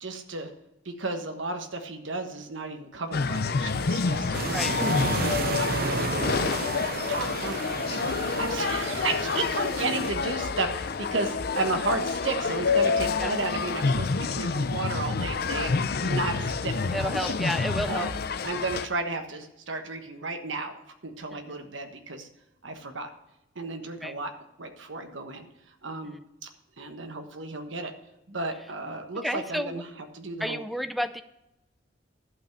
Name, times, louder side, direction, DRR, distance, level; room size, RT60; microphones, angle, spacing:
voice 1, 0.0-0.5 0.8-4.6 5.0-15.7 16.0-17.2 17.9-18.1 18.4-20.7 21.0-22.3 22.6-23.1 23.5-24.3 24.6-25.5 25.8-26.2 26.8-27.9 28.3-29.9 30.1-30.6, right 3 dB, 85° right, 6 dB, 1.4 m, -33 dB
sound 1, 3.1-18.9, left 4 dB, 55° left, 0.5 m, -28 dB
sound 2, 4.3-10.1, right 4 dB, 50° right, 0.5 m, -32 dB
voice 2, 15.8-16.2 16.9-18.1 21.3-21.4 24.0-24.1 26.0-26.2 29.2-29.7 30.4-31.2, equal, ahead, 11 dB, 0.4 m, -31 dB
11.5 x 5.8 x 6.4 m, 0.90 s
head